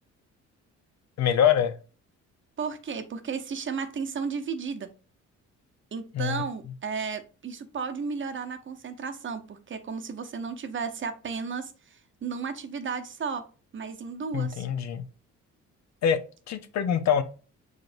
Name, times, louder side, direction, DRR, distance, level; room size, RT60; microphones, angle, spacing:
voice 1, 1.2-1.7 6.1-6.4 14.3-15.0 16.0-16.2 16.5-17.2, left 8 dB, 65° left, 0.6 m, -24 dB
voice 2, 2.6-4.9 5.9-13.4 13.7-14.7, right 5 dB, 40° right, 0.7 m, -34 dB
4.9 x 3.9 x 2.5 m
cardioid pair, 90°, 30 cm